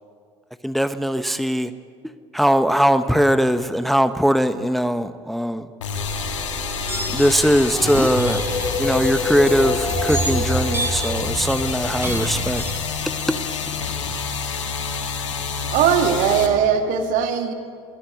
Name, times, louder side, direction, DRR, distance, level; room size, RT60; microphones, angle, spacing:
voice 1, 0.6-1.7 2.3-5.6 7.1-8.4 8.8-12.6 13.3-13.4, equal, ahead, 11 dB, 0.9 m, -20 dB
sound 1, 5.8-16.5, left 6 dB, 90° left, 2.0 m, -28 dB
sound 2, 5.9-12.8, equal, 15° right, 7.3 m, -26 dB
voice 2, 15.7-17.5, right 7 dB, 60° right, 6 dB, 2.6 m, -19 dB
22.5 x 16.0 x 9.7 m, 2.2 s
hypercardioid pair, 65°, 15 cm